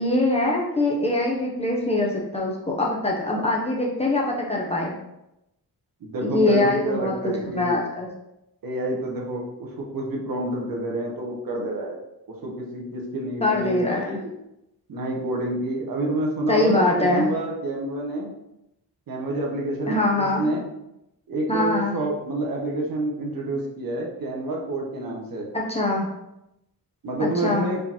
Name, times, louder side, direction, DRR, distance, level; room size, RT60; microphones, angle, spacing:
voice 1, 0.0-4.9 6.2-7.1 7.5-8.1 13.4-14.2 16.5-17.3 19.9-20.4 21.5-21.9 25.5-26.1 27.2-27.7, left 2 dB, 15° left, -3 dB, 0.7 m, -23 dB
voice 2, 6.0-7.8 8.6-12.0 12.4-14.3 14.9-18.3 19.1-20.6 21.3-25.5 27.0-27.8, right 1 dB, 60° right, -1 dB, 1.1 m, -28 dB
4.6 x 3.8 x 2.9 m, 0.86 s
wide cardioid pair, 155°, 38 cm